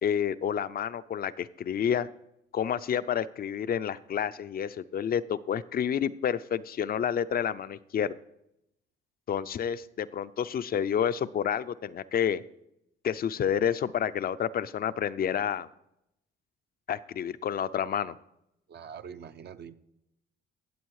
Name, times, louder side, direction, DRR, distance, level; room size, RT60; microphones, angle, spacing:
voice 1, 0.0-2.1 2.5-8.2 9.3-12.4 13.0-15.7 16.9-18.2, left 8 dB, 50° left, 14 dB, 0.5 m, -29 dB
voice 2, 18.7-19.7, right 7 dB, 55° right, 10 dB, 0.7 m, -44 dB
16.0 x 7.7 x 4.8 m, 0.83 s
cardioid pair, 90°, 20 cm